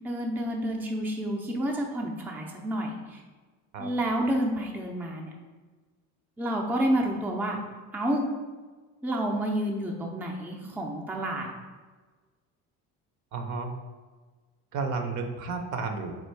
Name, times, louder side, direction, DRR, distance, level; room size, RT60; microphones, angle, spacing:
voice 1, 0.0-3.2 3.8-5.3 6.4-7.6 7.9-8.3 9.0-11.5, right 1 dB, 5° right, 0 dB, 0.5 m, -29 dB
voice 2, 13.3-13.7 14.7-16.1, right 4 dB, 55° right, 5 dB, 0.7 m, -32 dB
4.4 x 2.4 x 4.5 m, 1.4 s
cardioid pair, 110°, 35 cm